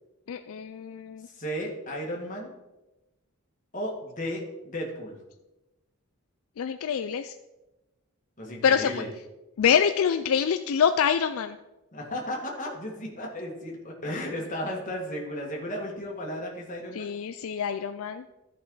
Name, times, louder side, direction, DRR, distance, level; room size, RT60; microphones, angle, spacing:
voice 1, 0.3-1.3 6.6-7.4 8.6-9.0 9.6-11.6 16.9-18.3, left 7 dB, 70° left, 10 dB, 0.4 m, -25 dB
voice 2, 1.2-2.5 3.7-5.2 8.4-9.1 11.9-17.1, equal, 35° left, 0 dB, 1.9 m, -34 dB
13.0 x 5.6 x 3.9 m, 1.0 s
head